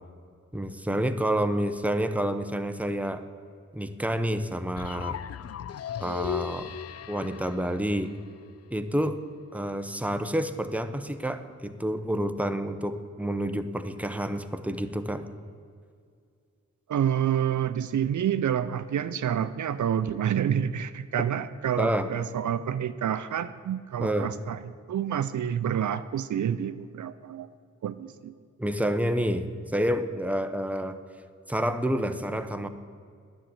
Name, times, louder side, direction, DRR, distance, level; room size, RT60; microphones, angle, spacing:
voice 1, 0.5-3.2 3.7-5.2 6.0-6.7 7.1-8.1 8.7-9.2 9.5-15.2 21.8-22.1 24.0-24.3 28.6-31.0 31.5-32.7, equal, 5° right, 8 dB, 0.9 m, -28 dB
sound 1, 4.8-8.7, left 9 dB, 55° left, 0.5 m, -37 dB
voice 2, 16.9-24.6 24.9-27.5 27.8-28.4, right 9 dB, 70° right, 12 dB, 0.5 m, -28 dB
10.0 x 7.6 x 8.4 m, 2.3 s
cardioid pair, 40°, 31 cm